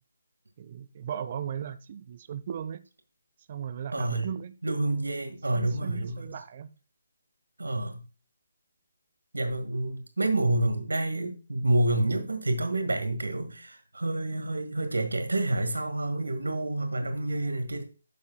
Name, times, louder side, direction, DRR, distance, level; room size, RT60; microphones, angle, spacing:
voice 1, 0.6-2.8 3.5-4.5 5.5-6.7, right 8 dB, 40° right, 0.6 m, -37 dB
voice 2, 3.9-4.3 4.6-6.3 7.6-8.0 9.3-17.8, right 2 dB, 75° right, 1.8 m, -28 dB
11.0 x 7.4 x 2.2 m
figure-of-eight pair, 145°, 0 cm